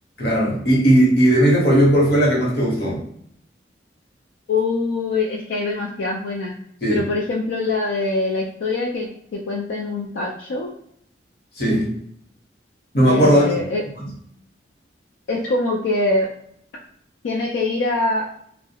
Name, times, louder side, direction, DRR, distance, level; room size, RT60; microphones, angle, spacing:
voice 1, 0.2-3.0 6.8-7.0 11.6-11.9 12.9-13.7 14.0-14.1, right 1 dB, 60° left, -3 dB, 0.9 m, -17 dB
voice 2, 4.5-6.5 6.9-10.7 13.1-13.8 15.3-16.3 17.2-18.2, left 2 dB, 85° left, -1 dB, 0.4 m, -23 dB
2.2 x 2.0 x 2.7 m, 0.68 s
head